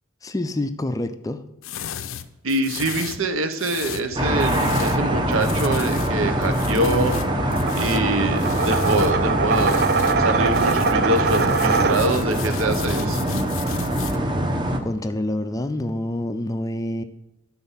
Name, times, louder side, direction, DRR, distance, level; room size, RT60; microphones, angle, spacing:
voice 1, 0.2-1.4 14.8-17.0, left 1 dB, 15° left, 0.4 m, -27 dB
sound 1, 1.6-5.1 5.3-9.1 9.5-10.2 10.5-14.2, left 9 dB, 75° left, 0.5 m, -36 dB
voice 2, 2.4-9.8 10.2-13.2, right 1 dB, 75° right, 0.9 m, -25 dB
sound 2, 4.1-12.4, right 4 dB, 50° right, 0.4 m, -25 dB
sound 3, 4.2-14.8, right 1 dB, 20° right, 0.8 m, -23 dB
11.5 x 4.2 x 5.6 m
head